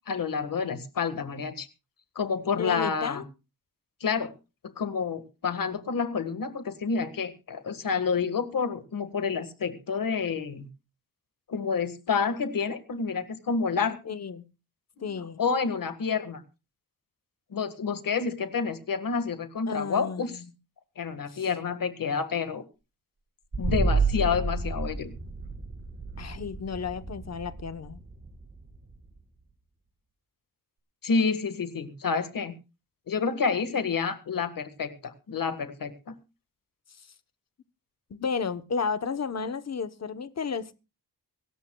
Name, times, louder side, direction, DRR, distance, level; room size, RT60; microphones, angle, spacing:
voice 1, 0.1-1.7 2.2-3.2 4.0-4.3 4.8-10.7 11.5-14.0 15.0-15.1 15.4-16.4 17.5-20.3 21.0-22.6 23.6-25.1 31.0-32.5 33.1-36.2, left 5 dB, 60° left, 9 dB, 1.7 m, -29 dB
voice 2, 2.6-3.2 14.1-14.5 15.0-15.4 19.7-20.5 21.3-21.4 26.2-28.0 36.9-37.1 38.1-40.7, left 5 dB, 45° left, 12 dB, 1.0 m, -33 dB
sound 1, 23.5-29.1, right 3 dB, 25° right, 2.1 m, -30 dB
25.0 x 13.0 x 2.3 m, 0.30 s
wide cardioid pair, 165°, 37 cm